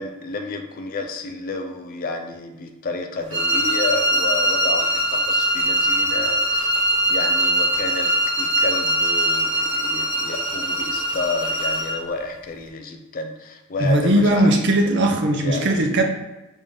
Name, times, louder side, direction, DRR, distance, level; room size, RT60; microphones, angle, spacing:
voice 1, 0.0-14.9 15.3-15.8, left 3 dB, 40° left, 5 dB, 0.4 m, -31 dB
sound 1, 3.3-12.0, right 1 dB, 25° right, 0.9 m, -22 dB
voice 2, 13.8-16.0, right 1 dB, 55° right, 3 dB, 0.6 m, -18 dB
5.1 x 2.6 x 3.6 m, 1.0 s
head